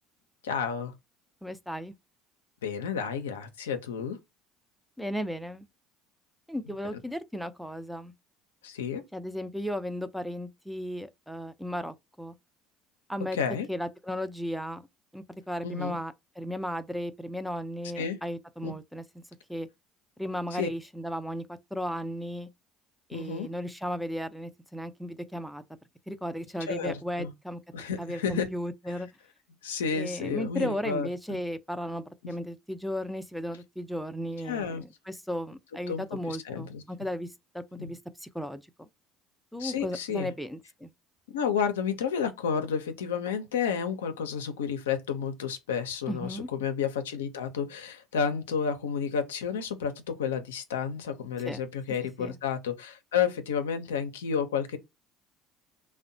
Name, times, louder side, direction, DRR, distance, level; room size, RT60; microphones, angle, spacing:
voice 1, 0.4-0.9 2.6-4.2 8.6-9.0 13.3-13.7 15.6-16.0 18.0-18.2 18.6-18.7 20.5-20.7 23.1-23.5 26.7-27.3 27.7-28.5 29.6-31.4 34.5-34.8 35.9-36.8 37.8-37.9 39.6-40.3 41.3-54.8, left 7 dB, 90° left, 0.4 m, -31 dB
voice 2, 1.4-1.9 5.0-5.7 6.5-8.1 9.1-12.3 13.1-13.4 13.7-14.8 15.1-19.2 19.5-19.7 20.2-21.4 21.7-22.5 23.1-25.6 26.1-27.6 28.0-29.1 29.9-37.3 37.5-38.9 39.5-40.9 46.1-46.5 51.4-51.6 52.2-52.4, equal, ahead, 0.4 m, -35 dB
2.6 x 2.1 x 2.6 m
hypercardioid pair, 70°, 0 cm